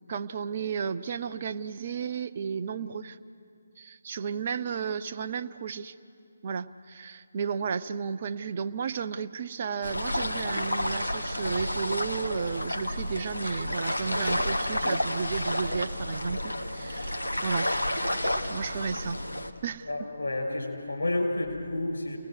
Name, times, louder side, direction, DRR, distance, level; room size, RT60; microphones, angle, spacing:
voice 1, 0.0-3.2 3.8-5.9 6.4-17.7 18.4-19.2 19.6-19.9, right 6 dB, 40° right, 8 dB, 0.6 m, -33 dB
sound 1, 9.8-19.5, left 1 dB, 90° left, 1.5 m, -30 dB
voice 2, 19.9-22.2, left 2 dB, 70° left, 1 dB, 6.3 m, -30 dB
30.0 x 19.5 x 6.3 m, 2.3 s
figure-of-eight pair, 145°, 0 cm